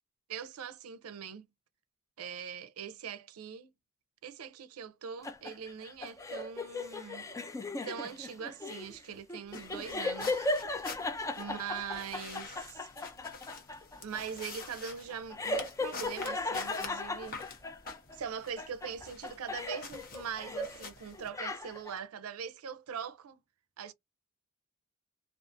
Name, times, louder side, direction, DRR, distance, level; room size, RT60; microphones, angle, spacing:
voice 1, 0.3-1.4 2.2-3.7 4.2-7.3 7.8-10.5 11.4-12.9 14.0-17.4 18.1-23.4 23.8-23.9, right 7 dB, 85° right, 0.5 m, -42 dB
sound 1, 5.2-18.2 18.6-20.8 21.1-22.0, left 2 dB, 15° left, 0.3 m, -37 dB
sound 2, 9.5-21.3, left 4 dB, 45° left, 0.8 m, -47 dB
2.4 x 2.4 x 2.5 m
head